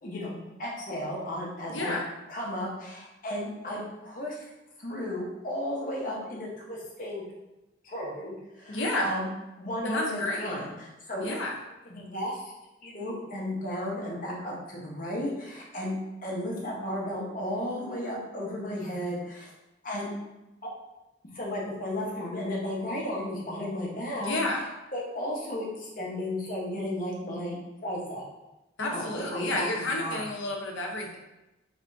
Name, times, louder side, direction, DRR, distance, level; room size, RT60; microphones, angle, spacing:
voice 1, 0.0-2.0 2.3-4.5 4.8-7.2 7.8-9.3 9.6-11.3 11.8-12.5 12.8-19.5 19.8-20.1 20.6-20.7 21.3-24.3 24.9-28.2 28.9-30.2, left 1 dB, 45° left, -3 dB, 0.8 m, -34 dB
voice 2, 1.7-2.1 8.7-9.1 9.8-10.5 11.2-11.5 24.2-24.6 28.8-31.2, left 2 dB, 85° left, 0 dB, 0.7 m, -30 dB
3.4 x 3.3 x 2.6 m, 0.98 s
head